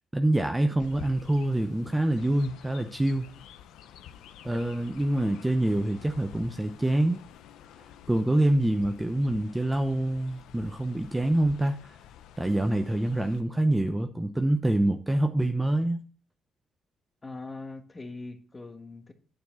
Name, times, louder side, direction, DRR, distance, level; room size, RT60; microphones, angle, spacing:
voice 1, 0.1-3.3 4.4-7.2 8.1-11.8 12.4-16.0, right 1 dB, 10° right, 0.7 m, -26 dB
Chirp tweet, 0.8-13.4, left 10 dB, 90° left, 0.6 m, -50 dB
voice 2, 17.2-19.1, left 3 dB, 25° left, 1.3 m, -41 dB
9.6 x 4.3 x 5.7 m
cardioid pair, 90°, 0 cm